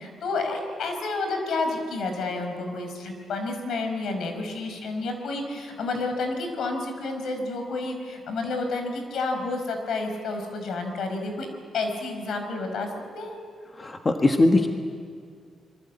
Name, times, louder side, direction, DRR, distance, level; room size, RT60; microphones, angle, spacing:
voice 1, 0.0-11.5 11.7-13.4, left 3 dB, 70° left, 5 dB, 5.2 m, -30 dB
voice 2, 13.8-14.7, left 2 dB, 20° left, 4 dB, 1.3 m, -20 dB
26.5 x 23.0 x 8.6 m, 2.2 s
wide cardioid pair, 165°, 0 cm